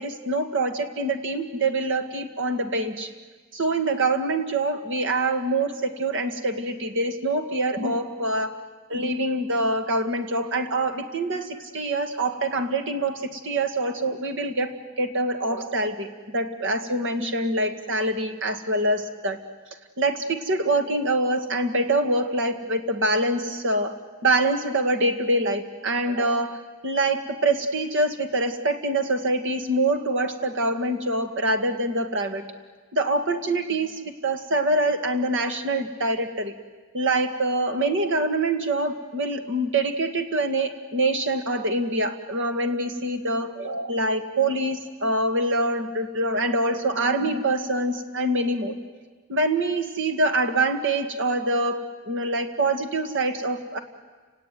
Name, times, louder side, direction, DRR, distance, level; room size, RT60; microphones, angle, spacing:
voice 1, 0.0-3.1 3.5-8.6 8.9-19.4 20.0-23.9 24.2-32.4 32.9-36.5 36.9-48.7 49.3-51.8 52.1-53.8, right 2 dB, 60° right, 7 dB, 2.0 m, -25 dB
29.5 x 18.5 x 9.4 m, 1.4 s
head